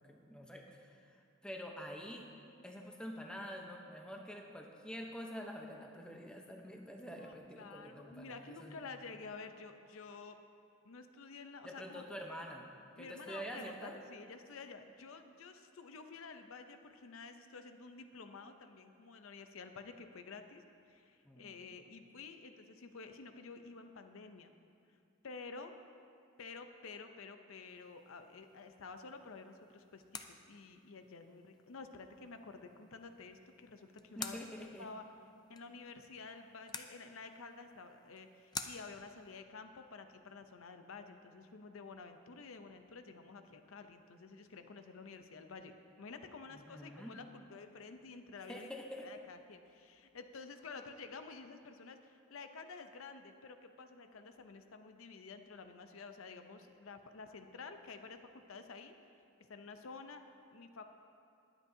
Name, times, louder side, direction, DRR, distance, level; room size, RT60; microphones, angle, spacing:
voice 1, 0.1-1.2 1.4-2.3 2.6-8.8 11.6-13.9 21.2-21.5 34.2-34.9 46.5-47.2 48.5-49.1, equal, 5° left, 1 dB, 0.8 m, -47 dB
voice 2, 7.1-10.4 10.8-12.0 13.0-24.5 25.2-25.7 26.4-34.5 34.8-35.1 35.5-48.7 49.0-58.2 58.5-58.9 59.5-60.3 60.5-60.8, left 4 dB, 80° left, 7 dB, 0.6 m, -51 dB
sound 1, 27.7-39.4, left 5 dB, 20° left, 0.4 m, -51 dB
21.0 x 8.1 x 2.7 m, 2.5 s
head